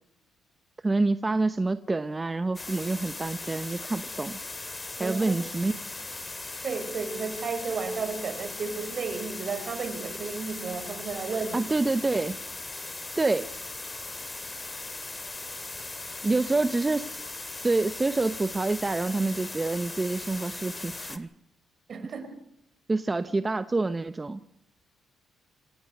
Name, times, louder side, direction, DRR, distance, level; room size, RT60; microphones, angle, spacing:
voice 1, 0.8-4.4 5.0-5.7 11.5-12.4 13.2-13.5 16.2-17.2 17.5-21.3 22.9-24.4, right 3 dB, 20° right, 0.8 m, -27 dB
sound 1, 2.5-21.2, left 3 dB, 20° left, 2.2 m, -39 dB
voice 2, 5.0-5.3 6.6-11.6 16.2-16.4 21.9-22.3, right 5 dB, 50° right, 4.9 m, -33 dB
26.5 x 17.5 x 6.5 m
cardioid pair, 90°, 0 cm